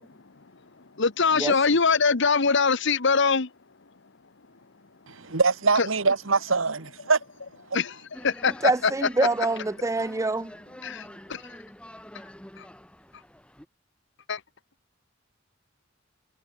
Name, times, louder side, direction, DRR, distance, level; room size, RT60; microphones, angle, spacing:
voice 1, 1.0-3.5 5.8-5.9 7.7-7.9 8.2-8.9 10.8-11.4 12.6-12.7 14.3-14.4, left 5 dB, 65° left, 1.2 m, -23 dB
voice 2, 5.1-7.2, right 4 dB, 85° right, 1.8 m, -23 dB
sound 1, 8.1-13.7, equal, 5° left, 2.3 m, -46 dB
voice 3, 8.6-10.5, right 3 dB, 15° right, 0.5 m, -25 dB
head